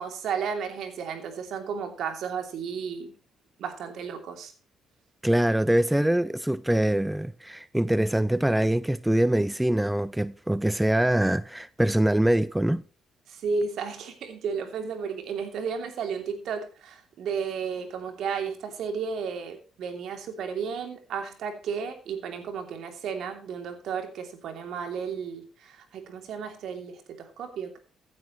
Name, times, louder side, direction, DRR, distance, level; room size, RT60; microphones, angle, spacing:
voice 1, 0.0-3.1 3.6-4.5 13.3-27.8, right 6 dB, 70° right, 2.9 m, -33 dB
voice 2, 5.2-12.8, right 1 dB, 10° right, 0.5 m, -24 dB
15.0 x 9.6 x 3.1 m
supercardioid pair, 60°, 0 cm